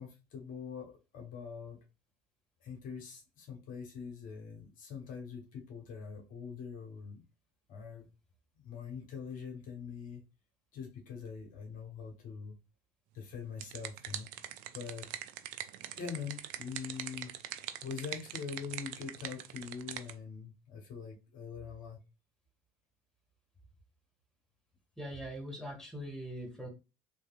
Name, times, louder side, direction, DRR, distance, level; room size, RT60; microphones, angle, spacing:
voice 1, 0.0-1.8 2.6-7.2 7.7-8.1 8.6-10.2 10.7-12.6 13.1-14.3 14.7-15.1 16.0-17.3 17.8-22.0, left 6 dB, 55° left, 1.2 m, -43 dB
sound 1, 13.3-20.1, right 11 dB, 60° right, 0.4 m, -43 dB
voice 2, 25.0-26.7, equal, 5° left, 1.3 m, -42 dB
3.3 x 2.7 x 2.4 m
hypercardioid pair, 60°, 17 cm